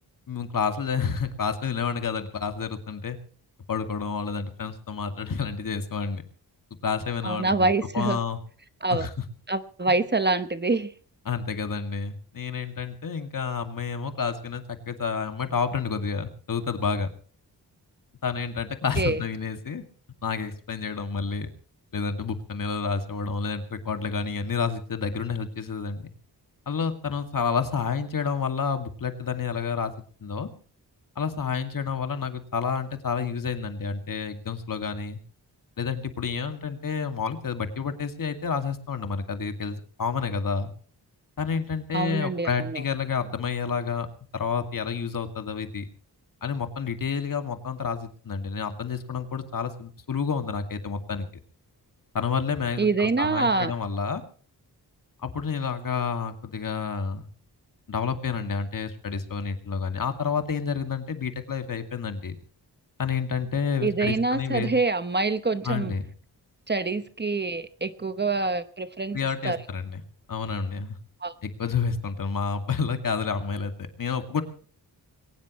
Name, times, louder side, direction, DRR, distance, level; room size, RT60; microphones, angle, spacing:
voice 1, 0.3-3.2 3.7-6.2 6.8-8.4 8.9-9.1 9.9-10.0 11.3-17.1 18.2-19.8 20.2-21.5 21.9-26.1 26.7-29.9 30.2-30.5 31.2-35.2 35.8-40.7 41.4-44.1 44.3-45.9 46.4-51.3 52.1-54.2 55.2-57.3 57.9-62.4 63.0-64.7 65.6-66.1 69.1-70.0 70.3-71.0 71.4-74.4, left 5 dB, 55° left, 7 dB, 2.3 m, -29 dB
voice 2, 7.2-8.2 8.8-9.1 9.5-10.9 19.0-19.2 41.9-42.8 52.8-53.7 63.8-65.9 66.7-69.2 69.4-69.6 71.2-71.3, right 3 dB, 25° right, 11 dB, 0.9 m, -25 dB
22.0 x 19.0 x 3.1 m, 0.42 s
wide cardioid pair, 175°, 39 cm